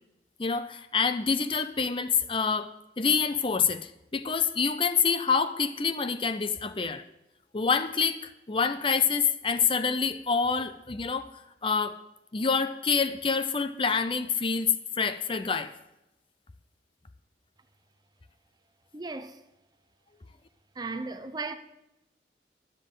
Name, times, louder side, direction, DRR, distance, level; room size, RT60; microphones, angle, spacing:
voice 1, 0.4-7.0 7.5-11.3 11.6-12.0 12.3-15.7, left 5 dB, 30° left, 0.5 m, -27 dB
voice 2, 18.9-19.4 20.7-21.6, right 3 dB, 20° right, 0.6 m, -36 dB
22.5 x 7.6 x 3.8 m
head